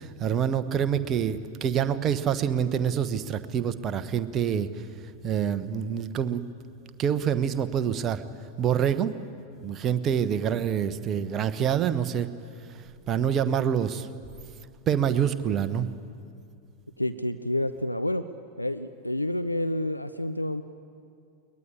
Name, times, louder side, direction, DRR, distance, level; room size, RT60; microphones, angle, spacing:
voice 1, 0.0-4.7 5.2-6.4 7.0-8.2 8.6-9.1 9.6-12.3 13.1-14.1 14.9-15.9, right 8 dB, 30° right, 12 dB, 1.1 m, -26 dB
voice 2, 17.0-18.2 18.6-20.6, left 1 dB, 85° left, 10 dB, 0.6 m, -29 dB
22.0 x 19.5 x 9.8 m, 2.4 s
figure-of-eight pair, 90°, 0 cm